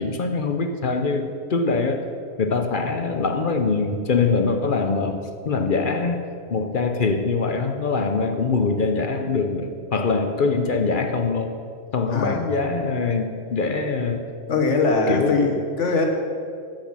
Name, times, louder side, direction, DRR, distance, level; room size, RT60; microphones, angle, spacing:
voice 1, 0.0-2.0 2.4-5.2 5.5-6.2 6.5-11.6 11.9-14.2 15.1-15.4, left 4 dB, 50° left, 6 dB, 0.8 m, -23 dB
voice 2, 12.1-12.5 14.5-16.1, left 3 dB, 70° left, 2 dB, 1.7 m, -21 dB
10.5 x 8.0 x 6.1 m, 2.3 s
omnidirectional pair, 1.3 m